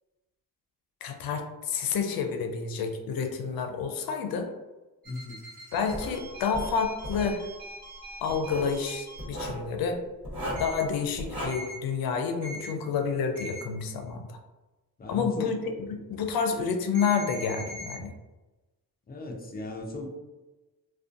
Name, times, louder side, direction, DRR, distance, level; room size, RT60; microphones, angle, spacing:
voice 1, 1.0-4.5 5.7-7.4 8.2-10.0 10.6-14.4 15.1-18.1, left 6 dB, 85° left, 5 dB, 0.5 m, -29 dB
voice 2, 5.0-5.4 15.0-15.6 19.1-20.1, left 2 dB, 25° left, 0 dB, 0.4 m, -37 dB
sound 1, 5.0-9.2 10.6-10.8 11.5-11.7 12.4-12.7 13.4-13.6 16.9-17.9, equal, 25° right, 0.9 m, -42 dB
Writing, 5.9-6.2 6.5-7.3 8.3-8.7 9.2-9.6 10.2-10.7 11.2-11.5, equal, 40° right, 1.2 m, -35 dB
2.5 x 2.2 x 2.5 m, 1.1 s
wide cardioid pair, 145°, 35 cm